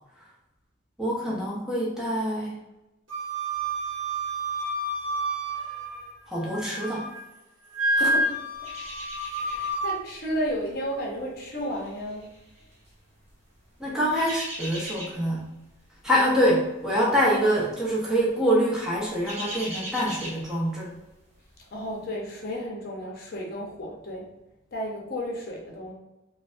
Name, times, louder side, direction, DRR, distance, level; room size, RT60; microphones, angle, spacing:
voice 1, 1.0-2.5 6.3-7.1 8.0-8.1 13.8-15.5 16.0-20.9, equal, 5° right, -6 dB, 0.7 m, -25 dB
Wind instrument woodwind instrument, 3.1-6.1 6.5-7.2 7.7-9.9, right 1 dB, 80° right, 0.9 m, -29 dB
voice 2, 7.9-8.3 9.4-12.3 21.7-24.2 24.7-25.9, equal, 50° left, -2 dB, 0.7 m, -33 dB
sound 1, 8.6-9.9 10.2-10.5 11.2-12.9 13.9-15.4 15.7-16.0 16.3-16.5 17.4-17.8 18.1-18.3 18.8-21.1 21.4-21.5, equal, 35° right, 0.8 m, -39 dB
3.2 x 2.1 x 2.5 m, 0.96 s
head